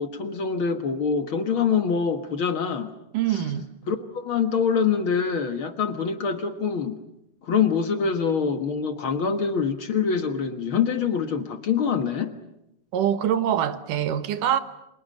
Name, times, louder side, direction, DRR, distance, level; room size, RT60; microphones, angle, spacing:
voice 1, 0.0-2.9 3.3-3.4 3.9-7.0 7.4-12.3, left 6 dB, 55° left, 1.4 m, -25 dB
voice 2, 3.1-3.7 12.9-14.6, right 10 dB, 65° right, 2.7 m, -24 dB
30.0 x 27.0 x 6.5 m
omnidirectional pair, 4.3 m